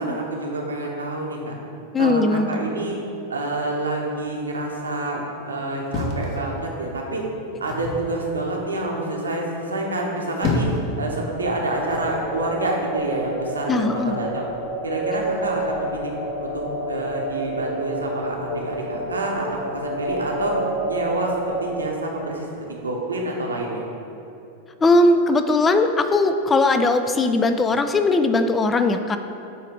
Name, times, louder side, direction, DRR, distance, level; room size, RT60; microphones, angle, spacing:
voice 1, 0.0-1.5 2.0-3.0 3.3-7.2 7.6-10.7 11.0-14.5 14.8-16.1 16.4-20.5 20.9-23.8, right 2 dB, 75° right, -1 dB, 1.0 m, -28 dB
voice 2, 1.9-2.6 13.7-14.2 24.8-29.2, left 2 dB, 20° left, 8 dB, 0.3 m, -19 dB
sound 1, 5.9-7.0 7.7-8.1 10.0-10.9 11.9-12.2, left 2 dB, 40° left, 1.0 m, -27 dB
sound 2, 11.7-21.7, right 1 dB, 90° left, 1.0 m, -29 dB
8.4 x 3.2 x 5.0 m, 2.9 s
figure-of-eight pair, 90°, 0 cm